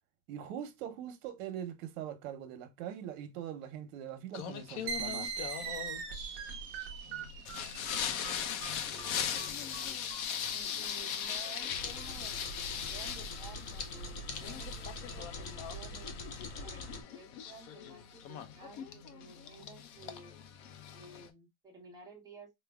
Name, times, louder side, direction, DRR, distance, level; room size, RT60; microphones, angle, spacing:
voice 1, 0.3-5.3, right 10 dB, 60° right, 1.0 m, -42 dB
Singing, 4.3-21.3, left 8 dB, 65° left, 0.8 m, -40 dB
sound 1, 4.9-12.1, right 6 dB, 35° right, 0.7 m, -42 dB
voice 2, 8.2-10.0 10.4-16.2 16.6-20.3 20.9-22.5, right 3 dB, 10° right, 1.0 m, -54 dB
sound 2, 11.7-17.0, left 2 dB, 30° left, 0.4 m, -43 dB
4.9 x 2.1 x 2.3 m
supercardioid pair, 165°, 45 cm